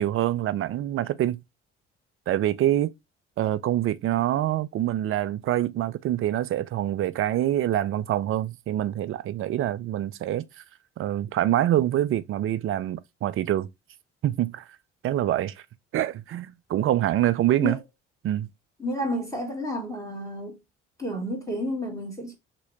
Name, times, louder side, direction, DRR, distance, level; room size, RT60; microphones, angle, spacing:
voice 1, 0.0-1.4 2.3-2.9 3.4-10.6 11.0-13.7 14.2-14.7 15.0-15.5 15.9-17.8 18.2-18.5, right 12 dB, 40° right, 0.4 m, -25 dB
voice 2, 18.8-20.6 21.0-22.3, equal, 10° left, 1.4 m, -31 dB
3.0 x 2.8 x 3.1 m
hypercardioid pair, 50°, 33 cm